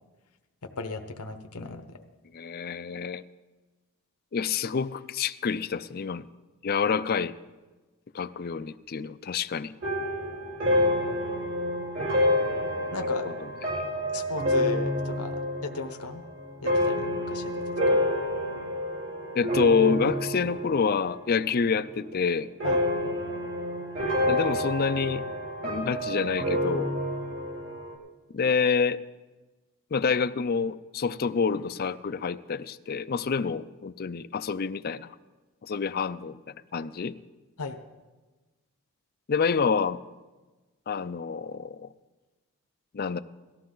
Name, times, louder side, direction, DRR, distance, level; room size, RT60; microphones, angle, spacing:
voice 1, 0.8-1.8 12.9-13.3 14.1-16.2 16.6-17.5 17.9-18.0 22.6-23.0 37.6-37.8, left 3 dB, 85° left, 5 dB, 1.0 m, -36 dB
voice 2, 2.3-3.2 4.3-6.3 6.6-7.3 8.1-9.7 13.2-13.5 19.4-22.5 24.3-25.2 25.6-26.9 28.3-29.0 29.9-35.1 35.7-37.1 39.3-40.0 40.9-41.9 42.9-43.2, left 5 dB, 40° left, 14 dB, 0.4 m, -27 dB
sound 1, 9.8-21.3 21.6-22.1 22.6-27.9, left 1 dB, 60° right, 4.9 m, -28 dB
18.5 x 13.5 x 3.9 m, 1.2 s
head